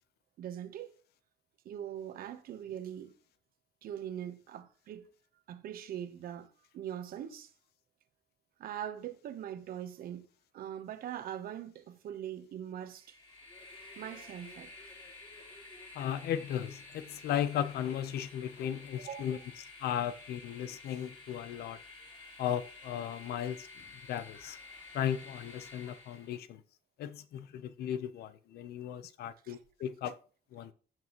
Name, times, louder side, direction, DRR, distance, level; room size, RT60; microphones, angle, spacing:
voice 1, 0.4-0.9 1.6-3.1 3.8-5.1 5.5-7.5 8.6-10.3 10.5-13.2 14.0-14.7 19.0-19.4 29.4-29.6, right 10 dB, 70° right, 1.0 m, -42 dB
Train, 13.0-26.4, left 3 dB, 35° left, 3.8 m, -51 dB
voice 2, 15.9-19.4 19.8-21.8 22.4-23.7 24.1-24.6 24.9-26.6 27.0-30.1 30.5-30.7, left 10 dB, 90° left, 0.8 m, -36 dB
15.5 x 6.1 x 3.1 m
cardioid pair, 165°, 16 cm